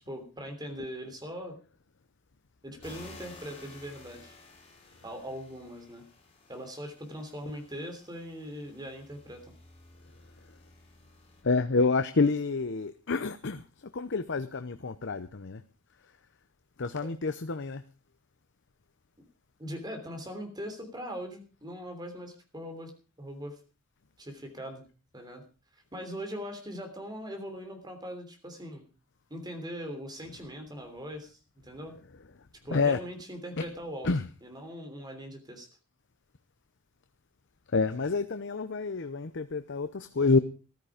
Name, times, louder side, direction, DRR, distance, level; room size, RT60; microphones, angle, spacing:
voice 1, 0.1-1.6 2.6-4.3 5.0-6.0 6.5-9.5 17.0-17.1 19.6-22.9 23.2-23.6 24.2-24.8 25.1-25.4 25.9-28.9 29.3-32.0 32.6-34.1 34.4-35.7, equal, 20° right, 3.2 m, -40 dB
sound 1, 2.8-11.4, left 2 dB, 25° left, 6.9 m, -54 dB
voice 2, 11.4-13.6 13.9-15.6 16.8-17.8 32.7-33.0 34.0-34.3 37.7-40.4, left 4 dB, 55° left, 0.7 m, -28 dB
14.5 x 12.5 x 5.0 m
head